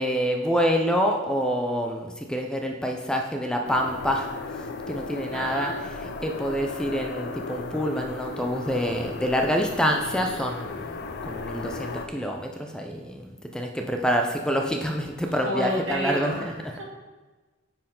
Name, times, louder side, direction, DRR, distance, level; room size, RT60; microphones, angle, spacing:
voice 1, 0.0-4.3 4.9-5.7 6.0-16.3, equal, 5° left, 2 dB, 0.5 m, -27 dB
sound 1, 3.6-12.1, left 3 dB, 60° left, 0.5 m, -36 dB
voice 2, 5.3-5.8 15.4-16.8, equal, 70° right, -5 dB, 2.5 m, -31 dB
9.3 x 4.5 x 3.7 m, 1.2 s
head